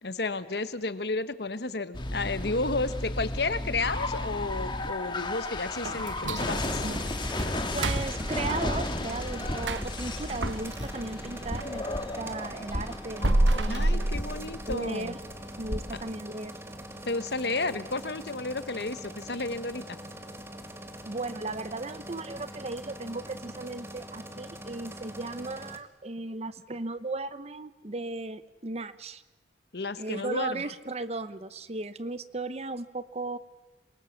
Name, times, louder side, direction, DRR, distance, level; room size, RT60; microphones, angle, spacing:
voice 1, 0.0-6.9 13.7-15.1 17.0-20.0 29.7-30.6, left 3 dB, 60° left, 13 dB, 1.2 m, -32 dB
sound 1, 1.9-16.2, left 1 dB, 25° left, 1.6 m, -34 dB
sound 2, 5.8-11.8 12.2-15.0 15.4-15.5 15.9-16.1 16.6-16.9 17.2-17.3 17.9-18.0, right 1 dB, 90° right, 1.2 m, -31 dB
sound 3, 6.4-25.8, right 1 dB, 15° right, 1.6 m, -43 dB
voice 2, 7.7-14.1 14.7-15.2 15.6-16.5 21.1-29.2 30.0-33.4, right 2 dB, 35° right, 13 dB, 0.9 m, -36 dB
27.0 x 23.5 x 7.3 m, 1.1 s
head